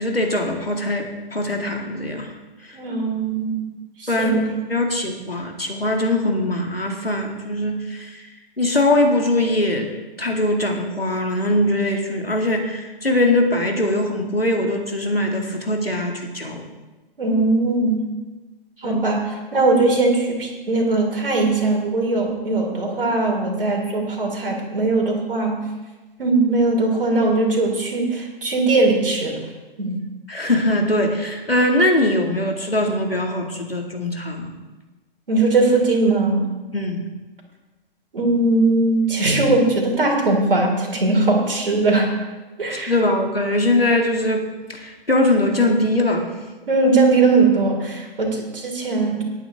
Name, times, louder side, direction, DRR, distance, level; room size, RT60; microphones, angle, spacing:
voice 1, 0.0-2.3 2.6-2.8 4.1-4.4 4.7-8.2 8.6-9.9 10.2-16.6 18.8-19.0 30.3-34.5 36.7-37.1 42.7-46.3, left 1 dB, 90° left, 1 dB, 2.3 m, -21 dB
voice 2, 2.7-3.6 4.0-4.4 17.2-18.1 18.8-19.2 19.5-25.6 26.2-29.4 29.8-30.0 35.3-36.4 38.1-42.1 42.6-42.9 46.7-49.2, right 3 dB, 70° right, 0 dB, 3.2 m, -19 dB
19.5 x 8.9 x 3.6 m, 1.2 s
figure-of-eight pair, 120°, 29 cm